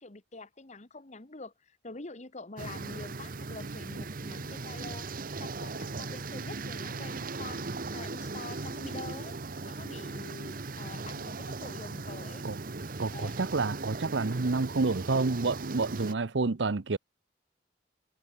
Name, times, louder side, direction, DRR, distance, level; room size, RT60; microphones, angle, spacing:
voice 1, 0.0-9.3 9.6-12.5 13.1-13.4, left 3 dB, 40° left, 1.5 m, -46 dB
sound 1, 2.6-16.1, right 3 dB, 50° right, 1.0 m, -38 dB
voice 2, 13.0-17.0, right 3 dB, 75° right, 0.8 m, -29 dB
head